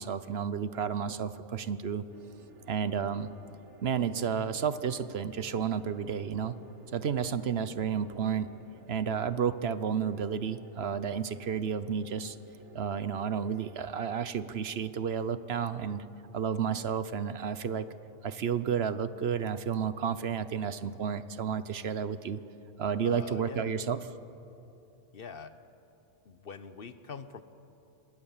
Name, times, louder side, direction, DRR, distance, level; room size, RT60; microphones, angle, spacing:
voice 1, 0.0-2.1 2.7-3.3 3.8-6.5 6.9-8.5 8.9-12.4 12.7-16.0 16.3-17.9 18.2-22.4 22.8-24.0, right 7 dB, 65° right, 14 dB, 1.0 m, -31 dB
sound 1, 2.1-13.9, right 3 dB, 80° right, 1.9 m, -55 dB
voice 2, 23.0-23.8 25.1-25.6 26.2-27.4, left 5 dB, 55° left, 12 dB, 1.0 m, -44 dB
26.5 x 20.5 x 7.3 m, 2.8 s
omnidirectional pair, 1.2 m